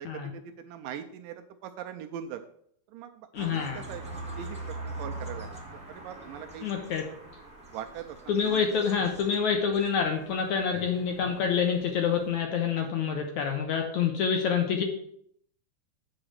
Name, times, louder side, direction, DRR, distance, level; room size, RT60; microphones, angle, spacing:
voice 1, 0.0-2.4 2.9-5.6 5.9-6.7 7.7-8.2 8.4-8.6 12.8-13.2, right 9 dB, 80° right, 6 dB, 2.1 m, -41 dB
voice 2, 3.3-3.8 6.6-7.0 8.3-14.8, left 6 dB, 70° left, 3 dB, 2.0 m, -27 dB
sound 1, 3.3-12.4, right 2 dB, 5° right, 1.0 m, -43 dB
8.6 x 4.9 x 6.4 m, 0.69 s
omnidirectional pair, 4.1 m